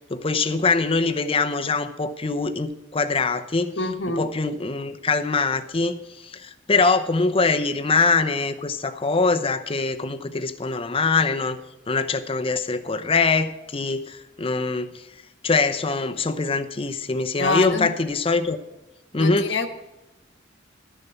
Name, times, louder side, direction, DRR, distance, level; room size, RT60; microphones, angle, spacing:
voice 1, 0.1-3.7 4.2-11.6 11.9-15.0 15.4-18.6 19.1-19.7, left 4 dB, 30° left, 9 dB, 0.7 m, -23 dB
voice 2, 3.8-4.3 17.4-17.9 19.2-19.7, left 3 dB, 70° left, 6 dB, 1.3 m, -25 dB
12.0 x 6.8 x 7.0 m, 1.0 s
head